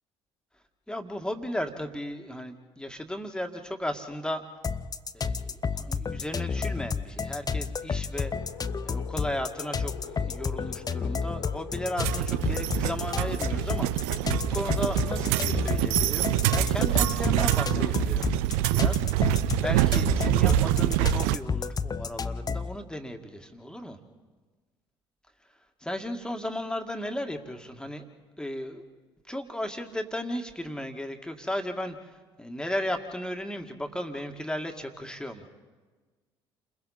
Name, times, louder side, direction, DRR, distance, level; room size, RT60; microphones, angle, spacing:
voice 1, 0.9-4.4 5.1-8.3 8.8-13.9 14.5-19.0 19.3-24.0 25.8-28.0 28.4-28.8 29.2-35.5, left 1 dB, 5° left, 5 dB, 2.1 m, -35 dB
sound 1, 4.6-22.8, left 5 dB, 25° left, 0.7 m, -31 dB
sound 2, 8.1-17.0, left 9 dB, 70° left, 1.3 m, -44 dB
sound 3, 12.0-21.4, right 15 dB, 65° right, 0.5 m, -25 dB
29.5 x 21.5 x 4.3 m, 1.3 s
figure-of-eight pair, 50°, 14 cm